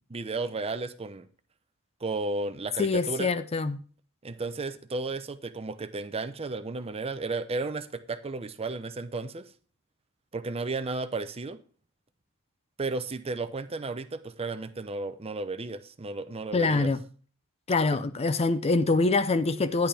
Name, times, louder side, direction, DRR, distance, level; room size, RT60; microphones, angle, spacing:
voice 1, 0.1-1.3 2.0-3.3 4.2-9.5 10.3-11.6 12.8-16.9, right 3 dB, 25° right, 0.6 m, -33 dB
voice 2, 2.8-3.8 16.5-17.0 17.7-19.9, left 3 dB, 30° left, 0.5 m, -25 dB
11.5 x 10.5 x 3.4 m
head